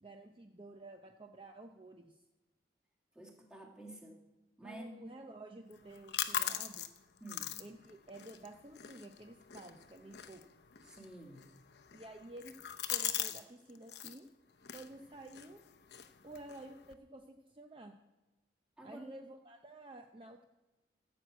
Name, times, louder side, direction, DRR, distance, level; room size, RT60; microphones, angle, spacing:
voice 1, 0.0-2.2 4.6-6.9 7.6-10.4 11.9-12.6 12.9-14.3 14.7-15.6 16.2-17.9 18.8-20.4, right 1 dB, 30° right, 4 dB, 0.6 m, -51 dB
voice 2, 3.1-4.2 4.6-4.9 7.2-7.6 10.8-11.5 18.8-19.1, right 1 dB, 5° right, -1 dB, 2.0 m, -50 dB
sound 1, 5.7-13.4 13.7-14.2 14.6-16.9, left 10 dB, 70° left, 0.7 m, -42 dB
14.5 x 6.3 x 7.9 m, 1.1 s
head